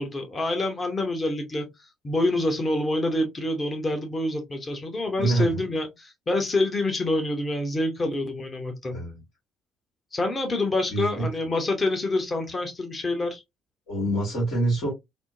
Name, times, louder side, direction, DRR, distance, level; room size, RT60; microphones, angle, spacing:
voice 1, 0.0-9.0 10.1-13.4, left 2 dB, 35° left, 0.9 m, -27 dB
voice 2, 5.2-5.6 8.9-9.2 10.9-11.3 13.9-14.9, right 2 dB, 70° left, 1.6 m, -25 dB
3.5 x 2.1 x 2.6 m
hypercardioid pair, 50°, 0 cm